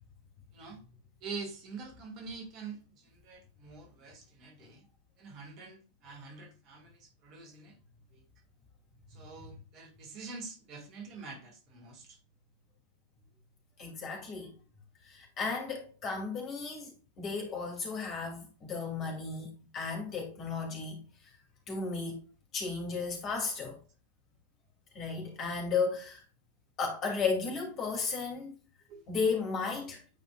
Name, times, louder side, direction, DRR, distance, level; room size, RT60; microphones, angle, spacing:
voice 1, 0.5-0.8 1.2-4.9 5.2-7.8 8.1-8.2 9.1-12.2 28.9-29.0, right 4 dB, 40° right, 1.9 m, -46 dB
voice 2, 13.8-14.5 15.0-19.5 19.7-21.0 21.7-22.2 22.5-23.8 24.9-26.2 26.8-28.5 29.1-30.0, left 4 dB, 30° left, 2.6 m, -34 dB
9.3 x 5.1 x 2.4 m
figure-of-eight pair, 90°, 0 cm